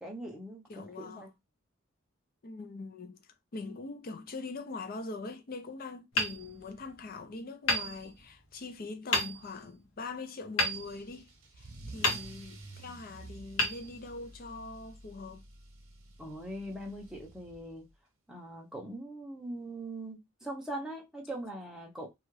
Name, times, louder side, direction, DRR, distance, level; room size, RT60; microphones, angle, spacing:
voice 1, 0.0-1.3 12.0-12.1 16.2-17.9 18.3-22.1, right 1 dB, 5° right, 0.7 m, -41 dB
voice 2, 0.7-1.3 2.4-11.3 11.6-15.4, left 3 dB, 45° left, 0.4 m, -42 dB
Hammer, 6.1-7.1 7.6-8.6 9.1-9.7 10.6-11.5 12.0-12.8 13.5-14.5, left 1 dB, 65° left, 0.9 m, -33 dB
Car / Engine starting / Accelerating revving vroom, 10.7-17.9, right 2 dB, 80° right, 0.8 m, -50 dB
2.8 x 2.4 x 3.1 m
head